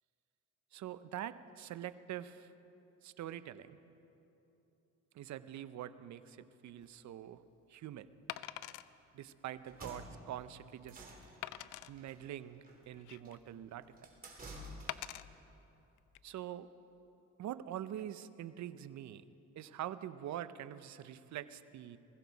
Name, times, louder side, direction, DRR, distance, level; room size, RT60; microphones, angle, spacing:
voice 1, 0.7-2.5 3.0-3.8 5.1-7.4 7.7-8.1 9.1-11.1 11.9-13.9 14.3-14.4 16.2-16.7 17.4-19.2 19.6-22.0, right 11 dB, 65° right, 14 dB, 0.7 m, -45 dB
Wood, 6.7-6.8 8.3-8.9 9.5-9.6 10.1-10.2 11.4-11.9 12.7-13.5 14.9-15.2 16.0-16.2, left 14 dB, 85° left, 0.5 m, -44 dB
sound 1, 9.6-15.2, right 1 dB, 30° right, 2.9 m, -52 dB
20.5 x 16.0 x 4.0 m, 2.9 s
cardioid pair, 90°, 30 cm